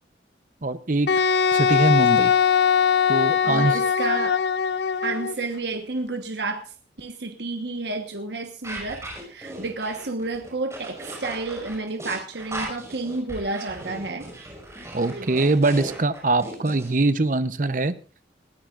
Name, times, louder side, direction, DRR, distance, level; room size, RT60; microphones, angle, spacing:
voice 1, 0.6-1.1 1.5-2.3 3.1-3.8 14.9-17.9, right 2 dB, 45° right, 13 dB, 0.8 m, -22 dB
Wind instrument woodwind instrument, 1.1-5.4, left 7 dB, 65° left, 0.6 m, -21 dB
voice 2, 3.4-4.4 5.0-6.6 7.0-14.3 15.0-15.4, right 3 dB, 70° right, 5 dB, 1.3 m, -31 dB
sound 1, 8.6-16.9, right 1 dB, 15° right, 5.3 m, -37 dB
21.0 x 14.5 x 2.5 m, 0.37 s
head